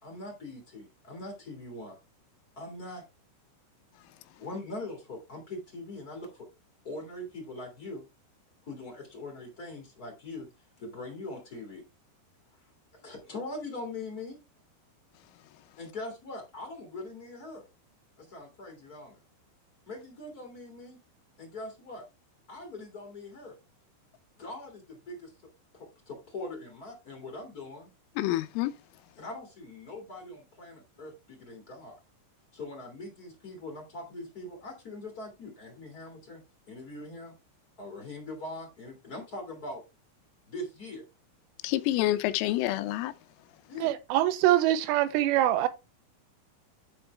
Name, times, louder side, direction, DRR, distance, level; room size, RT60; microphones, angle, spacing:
voice 1, 0.0-2.0 2.5-3.0 4.4-6.5 6.8-8.0 8.6-10.5 10.8-11.8 12.9-14.4 15.8-17.6 18.2-19.2 19.9-21.0 21.4-22.0 22.5-23.6 24.4-25.3 25.7-27.9 29.2-32.0 32.5-36.4 36.7-37.3 37.8-39.8 40.5-41.0 43.7-43.9, left 2 dB, 60° left, 0.9 m, -42 dB
voice 2, 28.2-28.7 41.6-43.1, left 15 dB, 85° left, 3.2 m, -27 dB
voice 3, 43.8-45.7, right 13 dB, 85° right, 3.3 m, -24 dB
12.0 x 4.4 x 3.4 m
omnidirectional pair, 5.7 m